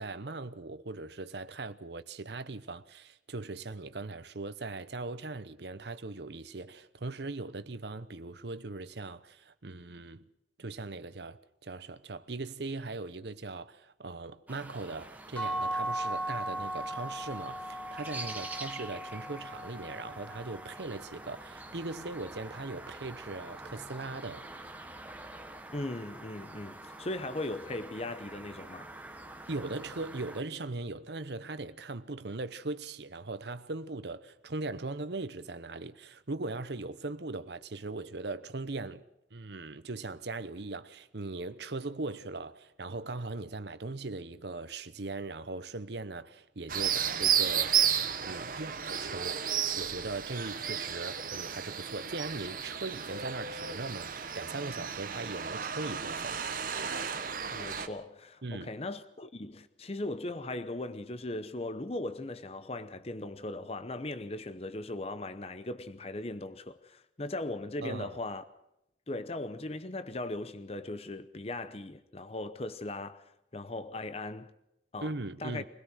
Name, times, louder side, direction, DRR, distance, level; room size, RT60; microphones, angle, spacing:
voice 1, 0.0-10.2 10.6-24.4 29.5-39.0 39.3-48.0 48.2-49.4 49.8-56.4 58.4-58.7 67.8-68.2 75.0-75.7, right 3 dB, 65° right, 0.9 m, -39 dB
sound 1, 14.5-30.4, right 2 dB, 10° right, 1.3 m, -46 dB
sound 2, 15.4-21.2, right 1 dB, 10° left, 2.7 m, -37 dB
voice 2, 25.7-28.9 57.5-68.4 69.1-73.2 73.5-74.5 74.9-75.1 75.4-75.6, left 2 dB, 35° left, 0.8 m, -38 dB
sound 3, 46.7-57.9, right 8 dB, 45° right, 1.2 m, -33 dB
24.0 x 17.0 x 6.3 m
head